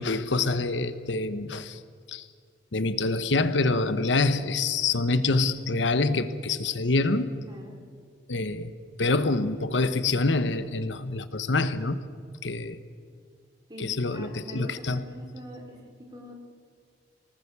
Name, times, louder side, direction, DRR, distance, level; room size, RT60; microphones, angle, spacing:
voice 1, 0.0-1.8 2.1-2.3 2.7-7.3 8.3-8.7 9.0-12.0 12.4-12.8 13.8-15.0, left 3 dB, 80° left, 12 dB, 1.0 m, -26 dB
voice 2, 7.4-7.8 13.7-16.4, equal, 25° right, 0 dB, 3.8 m, -44 dB
24.5 x 19.0 x 7.0 m, 2.1 s
head